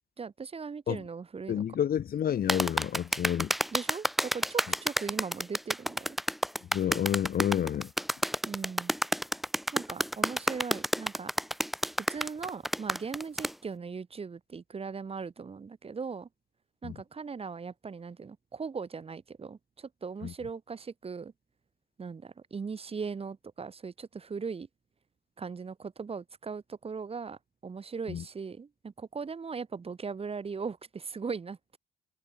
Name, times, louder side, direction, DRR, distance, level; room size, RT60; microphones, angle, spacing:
voice 1, 0.2-1.6 3.7-6.2 8.5-8.9 9.7-11.3 12.1-16.3 16.8-21.3 22.0-24.7 25.4-31.8, right 5 dB, 30° right, 1.1 m, -39 dB
voice 2, 1.5-3.5 6.7-7.9 16.8-17.0 20.2-20.3 28.1-28.2, left 9 dB, 55° left, 1.0 m, -29 dB
sound 1, 2.5-13.5, equal, ahead, 0.9 m, -29 dB
supercardioid pair, 70°, 19 cm